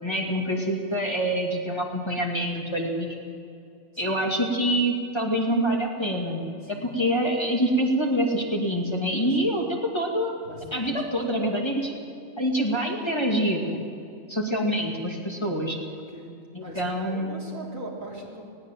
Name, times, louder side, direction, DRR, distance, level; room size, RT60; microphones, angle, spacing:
voice 1, 0.0-3.2 4.0-10.3 10.7-11.9 12.4-13.8 14.3-15.8 16.5-17.5, equal, 20° left, -1 dB, 2.5 m, -26 dB
voice 2, 10.4-11.4 16.1-16.3 16.6-18.4, right 1 dB, 80° right, -3 dB, 4.0 m, -41 dB
20.0 x 17.5 x 7.5 m, 2.5 s
omnidirectional pair, 1.4 m